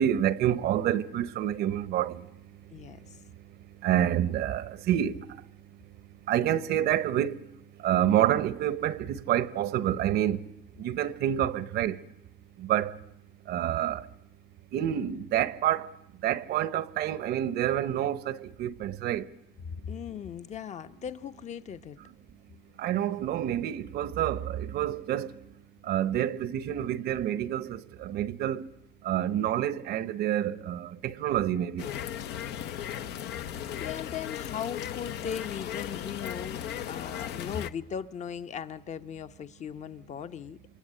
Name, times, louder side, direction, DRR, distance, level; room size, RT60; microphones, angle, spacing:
voice 1, 0.0-12.1 12.6-13.0 13.4-14.1 14.7-19.4 19.8-19.9 22.8-28.7 29.0-31.9, right 11 dB, 70° right, 0.9 m, -29 dB
voice 2, 2.7-3.2 19.7-22.0 33.8-40.6, left 8 dB, 45° left, 0.9 m, -38 dB
sound 1, 31.8-37.7, left 10 dB, 80° left, 0.9 m, -36 dB
27.5 x 22.5 x 8.8 m
cardioid pair, 110°, 17 cm